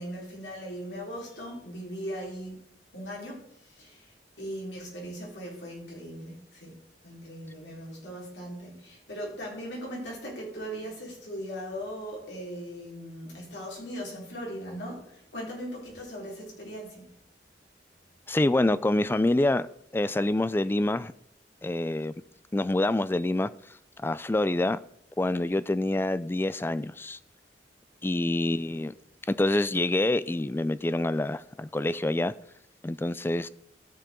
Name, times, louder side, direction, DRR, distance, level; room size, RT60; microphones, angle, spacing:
voice 1, 0.0-2.6 2.9-6.8 7.0-17.1, equal, 85° left, 4.2 m, -39 dB
voice 2, 18.3-19.7 19.9-21.1 21.6-22.1 22.5-23.5 24.0-24.8 25.2-27.2 28.0-28.9 29.3-32.3 32.8-33.5, left 2 dB, 15° left, 0.3 m, -26 dB
13.5 x 6.9 x 3.8 m
head